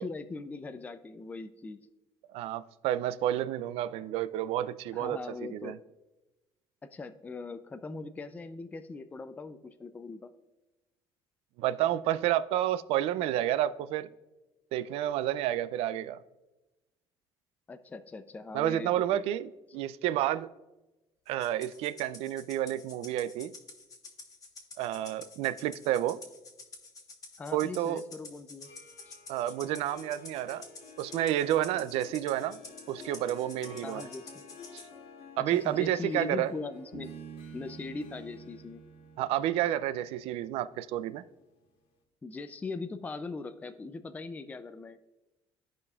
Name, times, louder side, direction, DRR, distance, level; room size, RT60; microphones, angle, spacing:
voice 1, 0.0-1.9 4.9-5.8 6.8-10.3 17.7-19.2 27.4-28.7 29.1-29.2 33.8-34.4 35.5-37.2 37.5-38.8 42.2-45.0, left 3 dB, 15° left, 0.4 m, -40 dB
voice 2, 2.3-5.2 5.5-5.8 11.6-14.1 14.7-16.2 18.5-20.5 21.3-23.5 24.8-26.2 27.5-28.0 29.3-30.6 31.0-32.6 32.9-34.1 34.7-34.8 35.4-36.5 39.2-41.2, right 12 dB, 80° right, 0.4 m, -30 dB
Rattle (instrument), 21.4-34.9, left 3 dB, 35° left, 1.2 m, -49 dB
Harp, 28.5-41.4, left 5 dB, 70° left, 1.4 m, -52 dB
Bass guitar, 36.9-40.4, right 8 dB, 45° right, 0.6 m, -48 dB
14.0 x 5.1 x 2.4 m
cardioid pair, 125°, 10 cm